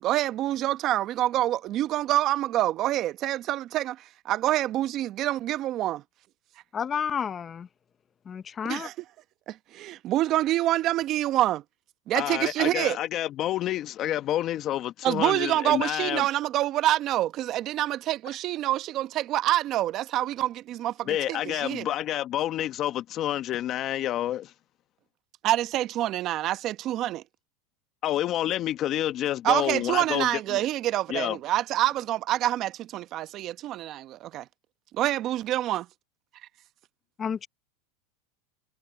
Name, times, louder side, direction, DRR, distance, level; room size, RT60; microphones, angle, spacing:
voice 1, 0.0-6.0 8.6-8.9 9.5-11.6 12.1-13.0 15.0-21.9 25.4-27.2 29.4-34.4 34.9-35.9, right 14 dB, 45° right, 1.1 m, -26 dB
voice 2, 6.7-7.7 8.3-8.9 37.2-37.5, left 7 dB, 25° left, 0.8 m, -31 dB
voice 3, 12.1-16.2 21.0-24.5 28.0-30.6 31.1-31.4, left 13 dB, 40° left, 1.4 m, -29 dB
supercardioid pair, 115°, 0 cm